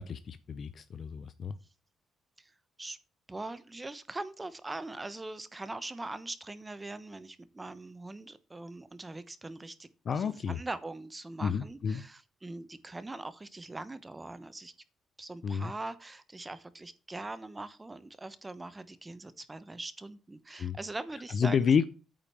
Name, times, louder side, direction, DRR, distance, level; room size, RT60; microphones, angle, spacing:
voice 1, 0.0-1.5 10.1-10.6 11.4-12.0 15.4-15.7 20.6-20.8 21.3-21.8, left 6 dB, 50° left, 14 dB, 0.6 m, -30 dB
voice 2, 3.3-9.9 10.2-14.7 15.2-21.6, right 2 dB, 20° right, 14 dB, 1.0 m, -42 dB
8.9 x 5.1 x 7.3 m, 0.34 s
cardioid pair, 90°, 0 cm